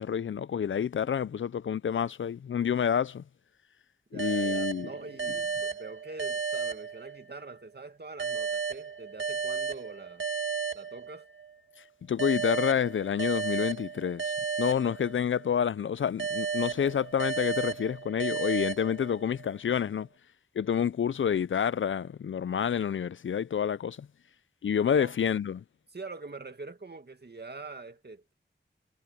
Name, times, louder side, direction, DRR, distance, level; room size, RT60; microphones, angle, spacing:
voice 1, 0.0-3.2 4.1-4.9 12.1-14.2 14.6-20.1 20.6-24.1 24.6-25.6, left 8 dB, 80° left, 0.4 m, -28 dB
voice 2, 4.1-10.3 10.7-11.3 24.9-25.2 25.9-28.3, right 3 dB, 60° right, 2.2 m, -44 dB
sound 1, 4.2-7.5 8.2-11.5 12.2-15.5 16.2-19.5, right 5 dB, 85° right, 1.6 m, -34 dB
wide cardioid pair, 75°, 20 cm